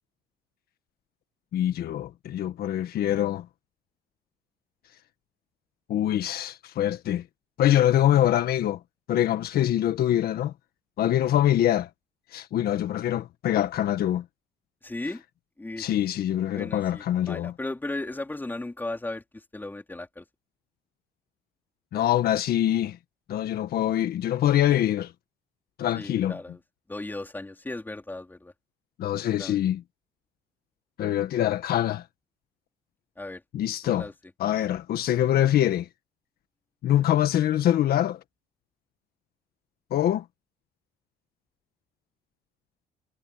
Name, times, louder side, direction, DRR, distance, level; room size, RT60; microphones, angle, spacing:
voice 1, 1.5-3.4 5.9-7.2 7.6-8.8 9.1-10.5 11.0-11.9 12.3-14.2 15.8-17.5 21.9-23.0 23.3-25.1 25.8-26.4 29.0-29.8 31.0-32.0 33.5-34.1 34.4-35.9 36.8-38.2 39.9-40.2, left 12 dB, 65° left, 1.6 m, -24 dB
voice 2, 14.8-15.2 15.6-15.9 16.5-19.2 19.5-20.2 26.0-26.6 26.9-28.5 29.4-29.6 33.2-33.4 33.8-34.1, left 2 dB, 10° left, 3.9 m, -36 dB
cardioid pair, 110°, 17 cm